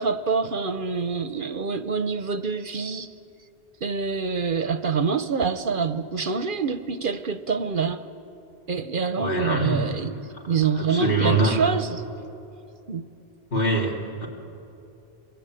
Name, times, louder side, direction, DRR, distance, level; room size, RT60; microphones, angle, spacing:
voice 1, 0.0-3.1 3.8-8.0 8.7-10.1 10.5-12.0 12.9-13.1, right 5 dB, 55° right, 11 dB, 0.9 m, -26 dB
voice 2, 9.2-9.9 10.1-10.2 10.8-11.6 13.5-14.3, right 2 dB, 60° left, -1 dB, 3.4 m, -24 dB
27.0 x 22.5 x 8.9 m, 2.9 s
omnidirectional pair, 1.1 m